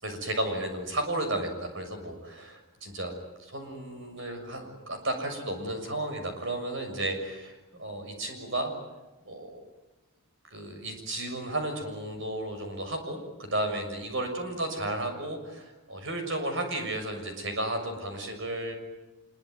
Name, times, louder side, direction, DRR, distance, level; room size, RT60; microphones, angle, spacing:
voice 1, 0.0-3.1 3.4-8.7 9.2-9.6 10.5-18.7, right 1 dB, 60° right, 5 dB, 6.7 m, -33 dB
26.0 x 23.0 x 9.4 m, 1.0 s
head